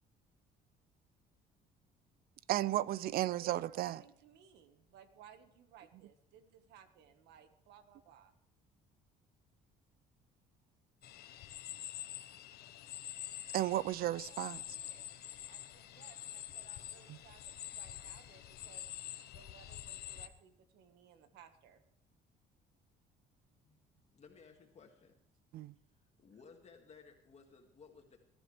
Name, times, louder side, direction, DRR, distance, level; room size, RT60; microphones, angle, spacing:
voice 1, 2.5-4.0 13.5-14.6 17.1-17.2 25.5-25.7, right 14 dB, 65° right, 0.4 m, -34 dB
voice 2, 3.4-8.3 14.0-15.1 15.5-18.9 19.3-21.8, right 8 dB, 85° right, 1.6 m, -61 dB
sound 1, 11.0-20.3, left 12 dB, 70° left, 1.1 m, -47 dB
voice 3, 24.1-25.2 26.2-28.2, left 5 dB, 40° left, 2.0 m, -58 dB
20.5 x 12.0 x 3.3 m
cardioid pair, 110°, 17 cm